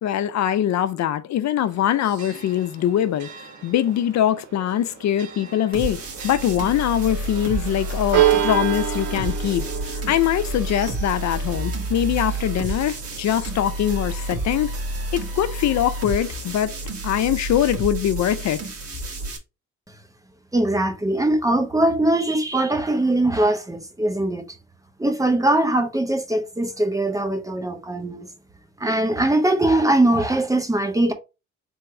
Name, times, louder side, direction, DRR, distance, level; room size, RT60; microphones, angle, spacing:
voice 1, 0.0-9.6 9.9-14.7 15.1-18.6, left 11 dB, 65° left, 0.5 m, -23 dB
Church bell, 1.6-16.6, right 10 dB, 75° right, 1.3 m, -31 dB
sound 1, 5.7-19.4, right 2 dB, 50° right, 1.7 m, -30 dB
voice 2, 20.5-24.4 25.0-28.3 28.8-31.1, right 1 dB, 10° right, 0.9 m, -21 dB
3.5 x 3.0 x 4.5 m
cardioid pair, 90°, 30 cm